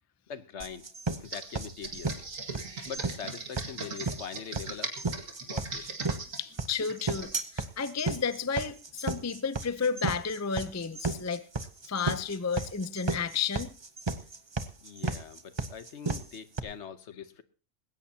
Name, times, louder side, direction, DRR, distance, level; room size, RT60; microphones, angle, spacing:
voice 1, 0.3-0.9 1.1-2.2 2.8-5.0 5.4-5.8 14.8-17.4, left 7 dB, 60° left, 1.2 m, -42 dB
sound 1, 0.6-16.6, right 3 dB, 25° right, 0.8 m, -33 dB
Computer keyboard, 1.2-7.4, right 4 dB, 85° right, 2.4 m, -39 dB
voice 2, 6.4-11.4 11.9-13.7, left 6 dB, 20° left, 0.4 m, -32 dB
19.5 x 17.0 x 2.8 m
omnidirectional pair, 1.3 m